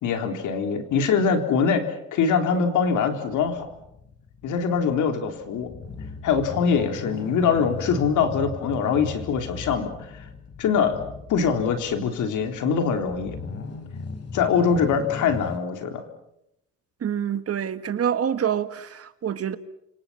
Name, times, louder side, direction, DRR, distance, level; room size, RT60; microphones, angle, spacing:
voice 1, 0.0-3.7 4.4-5.7 6.2-10.2 10.6-11.0 11.3-13.4 14.3-16.0, left 6 dB, 85° left, 3.9 m, -23 dB
sound 1, 3.3-15.6, left 4 dB, 55° left, 4.6 m, -38 dB
voice 2, 17.0-19.6, right 9 dB, 50° right, 1.8 m, -26 dB
29.0 x 26.0 x 5.9 m
cardioid pair, 90°, 30 cm